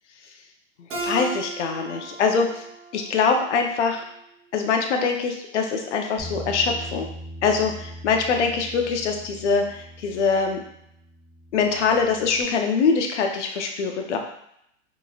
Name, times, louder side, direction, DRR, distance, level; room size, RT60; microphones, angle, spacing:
Keyboard (musical), 0.9-4.1, right 3 dB, 70° right, 1.2 m, -35 dB
voice 1, 1.0-2.6 2.9-4.0 4.5-7.1 7.4-10.6 11.5-14.2, left 5 dB, 60° left, 3 dB, 0.7 m, -23 dB
Bass guitar, 6.2-12.4, equal, 5° left, 0.4 m, -41 dB
3.7 x 3.1 x 2.3 m, 0.75 s
hypercardioid pair, 155°, 39 cm